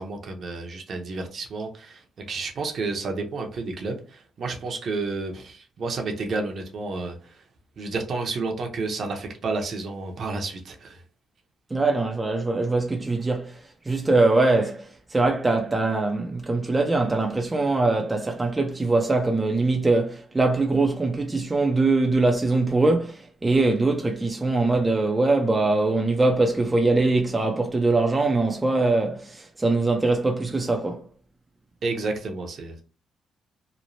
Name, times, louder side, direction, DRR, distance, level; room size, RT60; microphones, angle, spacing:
voice 1, 0.0-7.4 7.8-11.0 31.8-32.8, right 3 dB, 55° right, 0.7 m, -31 dB
voice 2, 11.7-13.6 13.9-31.0, right 2 dB, 20° right, 0.4 m, -22 dB
3.0 x 2.0 x 2.6 m
cardioid pair, 90°, 0 cm